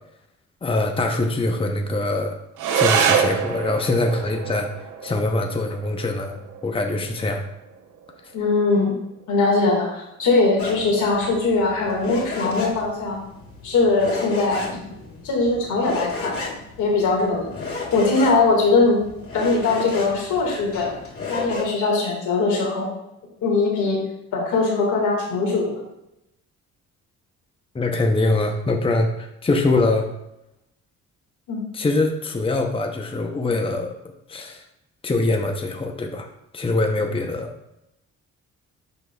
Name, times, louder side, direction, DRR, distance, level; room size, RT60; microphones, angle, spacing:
voice 1, 0.6-2.4 2.7-4.7 5.0-7.4 27.7-30.1 31.7-33.9 34.3-34.6 35.0-36.3 36.5-37.5, left 2 dB, 20° left, 4 dB, 0.7 m, -23 dB
sound 1, 2.5-11.5, right 7 dB, 85° right, 0.8 m, -27 dB
voice 2, 8.3-8.9 9.3-13.2 13.6-14.6 15.2-16.3 16.8-17.5 17.9-19.0 19.3-20.9 21.3-22.9 23.4-24.0 24.3-25.7 31.5-31.6, left 3 dB, 80° left, -1 dB, 1.9 m, -21 dB
sound 2, 10.6-21.6, left 3 dB, 50° left, 2.2 m, -33 dB
11.0 x 3.9 x 2.3 m, 0.86 s
cardioid pair, 90°, 30 cm